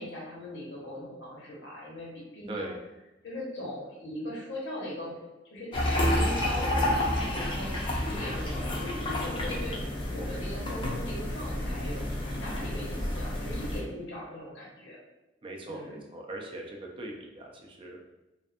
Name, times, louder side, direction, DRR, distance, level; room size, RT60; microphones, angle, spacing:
voice 1, 0.0-2.7 3.2-5.2 5.5-9.7 10.1-15.0 15.6-16.0, left 1 dB, 85° left, -5 dB, 1.0 m, -40 dB
voice 2, 2.5-2.8 15.4-18.1, right 1 dB, 30° right, 0 dB, 0.4 m, -40 dB
sound 1, 5.7-13.8, left 1 dB, 25° left, 0.5 m, -30 dB
2.4 x 2.4 x 2.5 m, 1.0 s
head